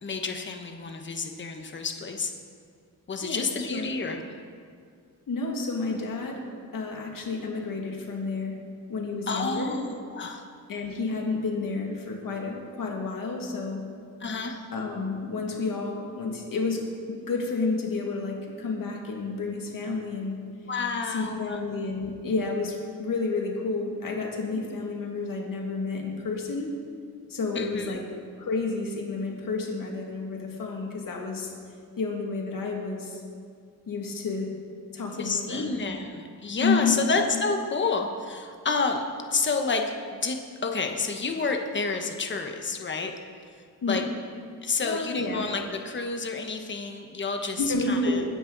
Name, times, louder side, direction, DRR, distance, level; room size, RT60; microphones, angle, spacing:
voice 1, 0.0-2.3 3.1-4.2 9.3-10.4 14.2-14.6 20.7-21.6 27.5-28.0 35.2-39.0 39.3-39.8 40.1-43.1 43.9-44.0 44.6-48.2, left 4 dB, 30° left, 4 dB, 1.1 m, -29 dB
voice 2, 3.2-3.9 5.3-6.4 6.7-8.6 8.9-9.8 10.7-13.8 14.7-20.4 21.0-26.7 27.3-28.0 28.4-31.5 32.0-33.2 33.9-34.5 34.9-35.8 36.6-37.0 43.8-44.1 44.8-45.5 47.6-48.2, left 3 dB, 65° left, 0 dB, 2.2 m, -30 dB
21.0 x 9.9 x 4.0 m, 2.2 s
wide cardioid pair, 165°, 36 cm